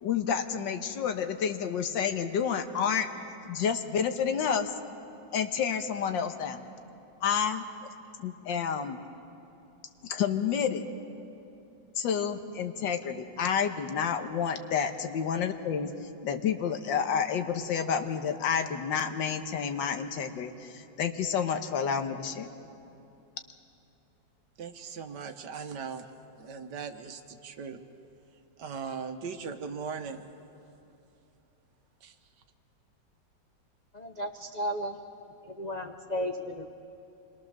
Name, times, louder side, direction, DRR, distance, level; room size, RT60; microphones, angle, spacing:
voice 1, 0.0-3.1 3.5-4.7 5.3-6.7 7.2-7.7 8.2-9.0 10.0-10.9 12.0-15.9 16.2-22.5, left 7 dB, 85° left, 8 dB, 1.8 m, -29 dB
voice 2, 24.6-26.1 26.4-27.8 28.6-30.2 32.0-32.1, right 5 dB, 70° right, 7 dB, 1.6 m, -39 dB
voice 3, 33.9-35.0 35.5-36.7, equal, 55° left, 4 dB, 0.4 m, -34 dB
26.5 x 21.5 x 6.6 m, 2.8 s
omnidirectional pair, 2.0 m